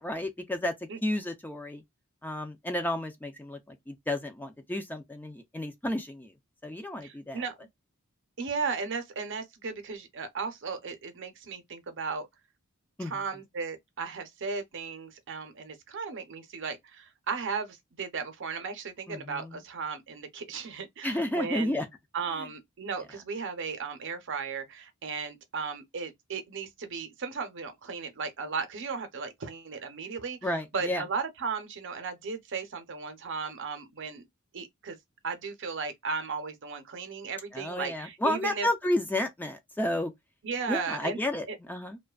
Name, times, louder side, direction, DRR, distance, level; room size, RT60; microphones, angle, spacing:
voice 1, 0.0-0.7 1.0-1.8 2.2-6.3 6.6-7.4 13.0-13.1 19.1-19.5 21.0-21.9 30.4-31.0 37.5-40.1 40.7-42.0, left 1 dB, 10° left, 0.4 m, -31 dB
voice 2, 7.0-7.7 8.4-12.3 13.0-21.8 22.1-34.3 34.5-35.0 35.2-38.7 40.4-41.2 41.5-41.6, right 5 dB, 60° right, 0.7 m, -36 dB
2.6 x 2.2 x 2.3 m
head